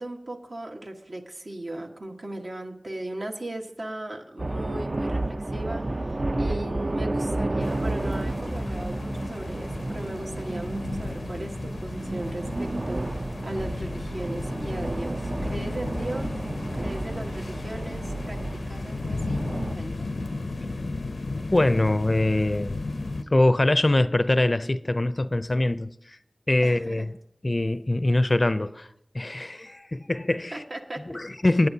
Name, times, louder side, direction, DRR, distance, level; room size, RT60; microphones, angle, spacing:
voice 1, 0.0-19.5 19.7-20.2 26.6-27.1 30.5-31.2, right 1 dB, 70° right, 1.4 m, -37 dB
sound 1, 4.4-19.7, right 2 dB, 50° right, 0.5 m, -31 dB
sound 2, 7.6-23.2, left 3 dB, 90° left, 0.6 m, -35 dB
sound 3, 8.5-12.4, equal, ahead, 0.6 m, -43 dB
voice 2, 21.5-22.8 23.3-25.9 26.5-27.1 27.4-28.9 29.1-30.5 31.1-31.7, left 1 dB, 45° left, 0.5 m, -23 dB
19.0 x 9.2 x 2.8 m
wide cardioid pair, 40°, 0 cm